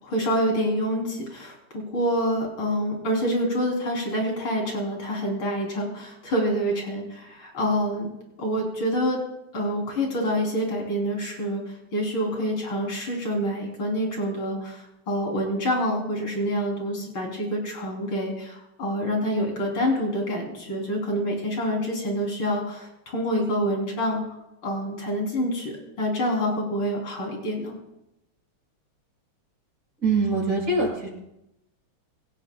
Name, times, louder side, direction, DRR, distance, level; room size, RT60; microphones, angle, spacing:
voice 1, 0.0-8.1 8.4-9.2 9.5-11.6 11.9-24.2 24.6-25.7 26.0-27.8, equal, 75° left, -1 dB, 4.4 m, -27 dB
voice 2, 30.0-31.1, right 3 dB, 40° right, -4 dB, 7.3 m, -23 dB
25.5 x 15.5 x 2.3 m, 0.86 s
omnidirectional pair, 2.2 m